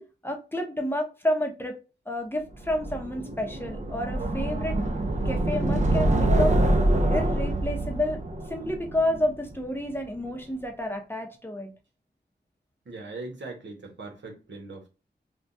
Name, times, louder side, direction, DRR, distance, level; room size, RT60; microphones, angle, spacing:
voice 1, 0.2-1.7 2.1-4.8 5.3-6.6 7.1-8.2 8.5-11.7, left 1 dB, 10° left, 0.7 m, -30 dB
sound 1, 2.6-9.7, right 1 dB, 40° right, 0.5 m, -25 dB
voice 2, 12.8-14.9, right 3 dB, 80° right, 1.0 m, -40 dB
3.4 x 2.2 x 2.6 m
wide cardioid pair, 85°, 18 cm